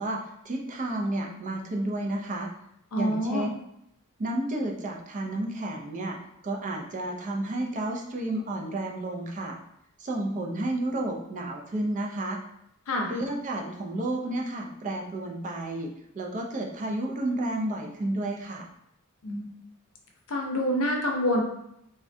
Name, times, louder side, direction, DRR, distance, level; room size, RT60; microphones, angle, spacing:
voice 1, 0.0-2.5 3.0-3.5 4.2-6.2 6.4-9.6 10.0-12.4 13.1-18.7, right 1 dB, 35° right, 1 dB, 0.4 m, -31 dB
voice 2, 2.9-3.5 12.9-13.1 19.2-19.5 20.3-21.4, equal, 65° left, 1 dB, 0.6 m, -26 dB
3.4 x 2.2 x 2.5 m, 0.78 s
head